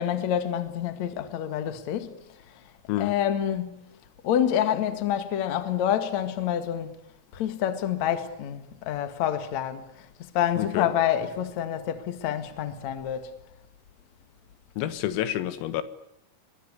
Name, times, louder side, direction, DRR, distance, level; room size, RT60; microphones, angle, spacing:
voice 1, 0.0-2.2 3.0-3.8 4.2-7.0 7.3-9.9 10.2-13.3, left 10 dB, 50° left, 2.2 m, -27 dB
voice 2, 10.6-10.9 14.8-15.8, left 13 dB, 90° left, 4.1 m, -28 dB
24.0 x 21.5 x 9.8 m
omnidirectional pair, 5.9 m